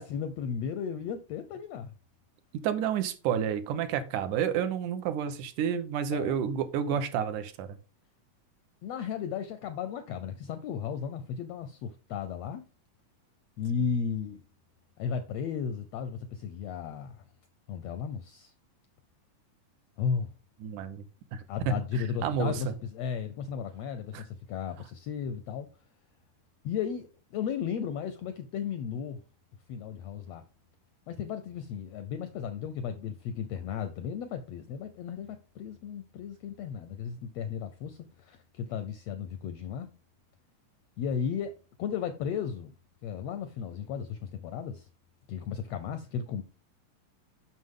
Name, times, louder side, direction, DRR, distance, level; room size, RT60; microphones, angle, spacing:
voice 1, 0.0-1.9 6.1-6.3 6.9-7.0 8.8-12.6 13.6-14.4 15.0-17.2 17.7-18.5 20.0-20.3 21.5-25.7 26.6-29.2 29.7-30.4 31.1-39.9 41.0-41.5 41.8-42.7 43.0-44.9 45.3-46.4, left 7 dB, 80° left, 1.5 m, -35 dB
voice 2, 2.5-7.8 20.6-21.1 21.3-22.7 24.1-24.2, right 8 dB, 80° right, 2.2 m, -30 dB
7.6 x 6.1 x 3.6 m
omnidirectional pair, 3.6 m